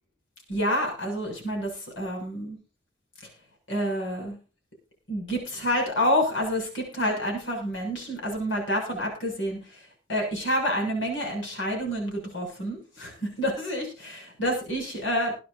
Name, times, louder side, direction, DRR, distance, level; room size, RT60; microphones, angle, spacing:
voice 1, 0.5-2.6 3.2-3.3 3.7-4.4 5.1-15.3, equal, 90° left, 2 dB, 7.2 m, -28 dB
22.0 x 9.5 x 2.8 m, 0.34 s
head